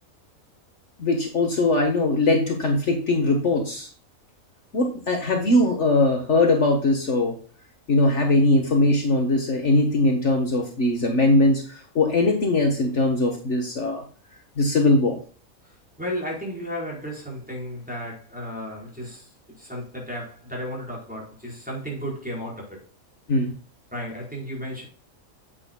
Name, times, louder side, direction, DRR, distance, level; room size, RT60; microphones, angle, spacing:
voice 1, 1.0-3.9 4.7-7.4 7.9-14.0 14.6-15.2 23.3-23.5, left 2 dB, 55° left, 1.7 m, -21 dB
voice 2, 16.0-19.3 19.6-22.8 23.9-24.9, equal, 5° right, 4.7 m, -33 dB
9.7 x 8.4 x 2.3 m
omnidirectional pair, 1.5 m